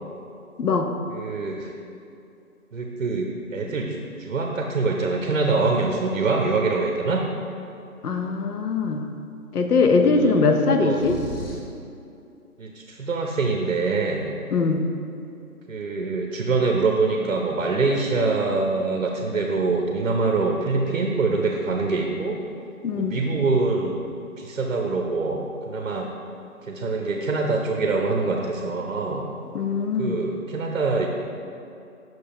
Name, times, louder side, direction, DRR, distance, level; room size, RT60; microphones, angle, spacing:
voice 1, 0.6-0.9 8.0-9.0 9.5-11.2 14.5-14.8 22.8-23.2 29.5-30.2, left 4 dB, 85° left, 5 dB, 0.8 m, -21 dB
voice 2, 1.1-1.7 2.7-7.2 10.0-11.1 12.6-14.3 15.7-22.4 23.0-24.0 24.4-26.1 26.6-29.2 30.0-31.1, right 3 dB, 55° right, 2 dB, 0.6 m, -24 dB
sound 1, 10.9-11.8, right 1 dB, 40° left, 1.0 m, -35 dB
6.7 x 6.0 x 2.9 m, 2.6 s
hypercardioid pair, 175°, 44 cm